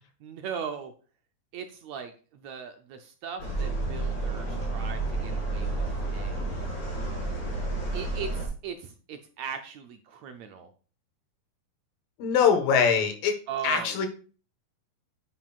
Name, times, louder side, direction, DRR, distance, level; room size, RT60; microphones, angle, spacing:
voice 1, 0.2-0.9 1.5-6.4 7.9-10.7 13.5-14.1, right 7 dB, 75° right, 7 dB, 1.6 m, -39 dB
sound 1, 3.4-8.5, right 2 dB, 25° left, 4.7 m, -30 dB
voice 2, 12.2-13.3 13.6-14.1, left 6 dB, 85° left, 6 dB, 3.0 m, -22 dB
9.9 x 9.3 x 2.4 m, 0.38 s
omnidirectional pair, 3.9 m